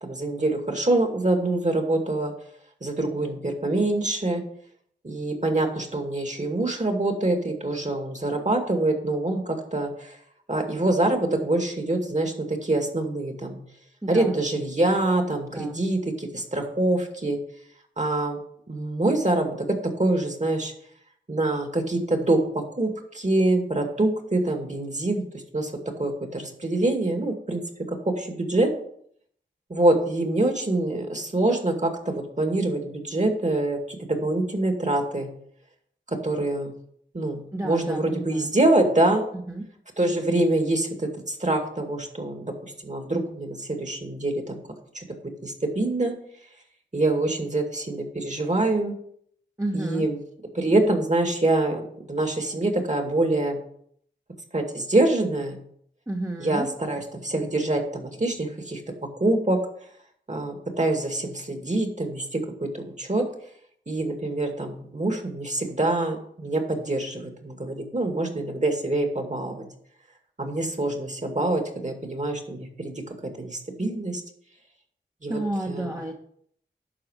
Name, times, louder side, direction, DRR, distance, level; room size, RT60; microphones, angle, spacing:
voice 1, 0.0-2.3 2.8-4.4 5.0-10.2 10.5-13.6 14.1-17.4 18.0-18.4 18.7-20.7 21.3-25.7 26.0-27.6 27.9-28.7 29.7-35.3 36.1-36.7 37.1-39.2 40.0-44.6 44.9-45.2 45.4-46.1 46.9-48.9 49.7-50.2 50.5-53.6 54.5-55.6 56.4-59.6 60.3-63.2 63.9-69.7 70.4-74.2 75.2-75.4 75.7-76.0, right 2 dB, 40° right, 4 dB, 2.2 m, -25 dB
voice 2, 14.0-14.4 15.5-15.7 37.5-38.5 39.3-39.6 49.6-50.1 56.1-56.7 75.3-76.1, right 1 dB, 15° right, 1 dB, 1.2 m, -31 dB
11.5 x 4.4 x 6.5 m, 0.65 s
cardioid pair, 45°, 20 cm